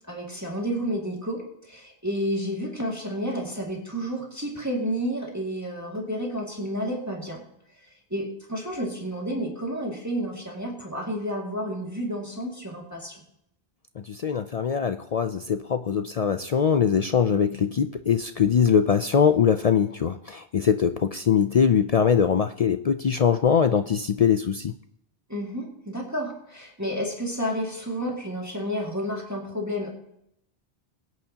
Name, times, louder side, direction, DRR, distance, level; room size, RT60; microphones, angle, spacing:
voice 1, 0.1-7.4 8.1-13.2 25.3-29.9, equal, 15° right, -2 dB, 2.2 m, -31 dB
voice 2, 14.1-24.7, left 7 dB, 55° left, 9 dB, 0.4 m, -22 dB
22.0 x 9.2 x 2.9 m, 0.77 s
omnidirectional pair, 1.1 m